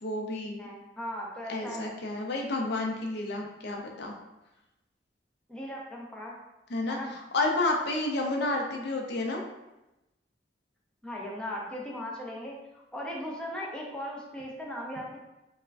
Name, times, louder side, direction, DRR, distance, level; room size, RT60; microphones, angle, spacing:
voice 1, 0.0-0.7 1.5-4.1 6.7-7.0 7.3-9.4, left 2 dB, 65° left, 1 dB, 0.5 m, -30 dB
voice 2, 0.6-1.9 5.5-6.3 6.9-7.1 11.0-15.2, equal, 5° left, -3 dB, 0.5 m, -38 dB
4.4 x 2.1 x 2.5 m, 0.96 s
head